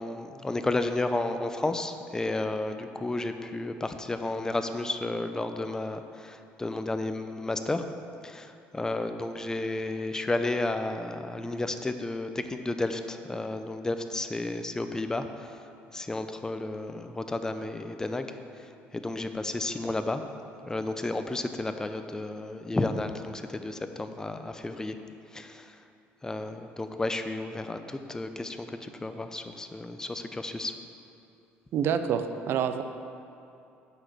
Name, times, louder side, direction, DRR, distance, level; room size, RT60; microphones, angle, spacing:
voice 1, 0.0-7.8 8.2-15.6 15.9-18.3 18.9-20.2 20.6-25.0 25.3-25.7 26.2-30.7, left 2 dB, 15° left, 8 dB, 0.6 m, -32 dB
voice 2, 31.7-32.8, right 8 dB, 60° right, 9 dB, 0.6 m, -27 dB
7.9 x 6.1 x 6.0 m, 2.7 s
cardioid pair, 100°, 5 cm